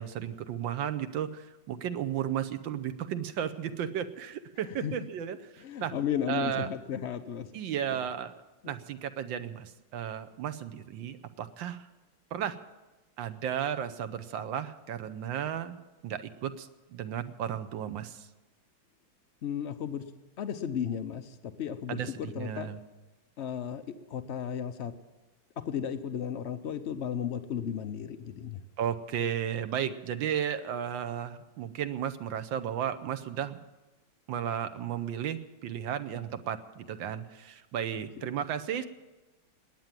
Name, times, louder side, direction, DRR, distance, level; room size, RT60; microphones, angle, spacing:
voice 1, 0.0-5.9 6.3-6.7 7.5-8.4 8.7-11.9 12.3-12.6 13.2-18.3 21.9-22.8 28.8-33.6 34.3-38.8, right 9 dB, 75° right, 11 dB, 1.5 m, -34 dB
voice 2, 5.6-7.5 7.9-8.0 8.6-8.7 19.4-20.0 20.4-22.7 23.4-23.8 24.1-24.9 25.6-28.6, left 8 dB, 85° left, 10 dB, 0.6 m, -34 dB
19.5 x 9.3 x 7.5 m, 1.1 s
omnidirectional pair, 2.2 m